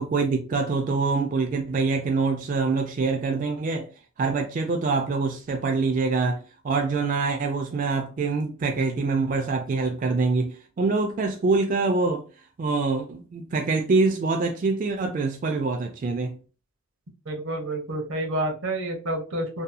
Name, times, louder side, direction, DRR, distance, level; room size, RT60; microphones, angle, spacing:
voice 1, 0.0-3.9 4.2-12.2 12.6-16.4, right 4 dB, 40° right, 0.3 m, -25 dB
voice 2, 17.3-19.6, right 1 dB, 85° right, 0.8 m, -29 dB
2.7 x 2.3 x 2.4 m
head